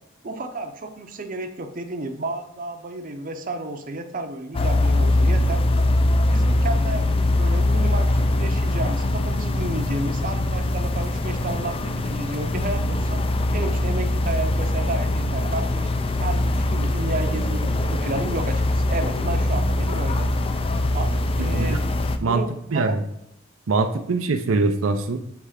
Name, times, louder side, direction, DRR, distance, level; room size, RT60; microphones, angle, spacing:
voice 1, 0.2-5.6 6.1-13.2 13.5-15.9 16.2-20.3 20.9-21.8 22.2-23.0, right 2 dB, 45° right, 5 dB, 0.7 m, -32 dB
sound 1, 4.5-22.2, left 1 dB, 30° left, 0.4 m, -22 dB
voice 2, 21.4-21.8 22.2-22.4 22.7-23.0 23.7-25.2, right 3 dB, 85° right, 7 dB, 0.5 m, -23 dB
7.1 x 3.2 x 4.9 m, 0.81 s
head